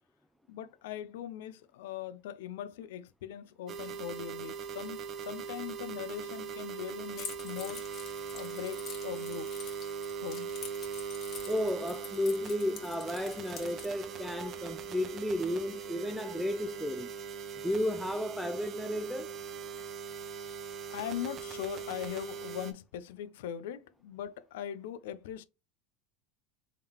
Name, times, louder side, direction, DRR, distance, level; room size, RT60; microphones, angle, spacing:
voice 1, 0.5-7.8 8.3-9.5 10.2-10.5 20.9-25.4, left 10 dB, 85° left, 0.4 m, -40 dB
sound 1, 3.7-22.7, right 7 dB, 35° right, 0.7 m, -40 dB
Keys jangling, 7.1-13.9, left 6 dB, 40° left, 1.5 m, -47 dB
voice 2, 11.5-17.1 17.6-19.3, left 1 dB, ahead, 0.3 m, -33 dB
3.6 x 3.6 x 2.9 m
supercardioid pair, 120°, 0 cm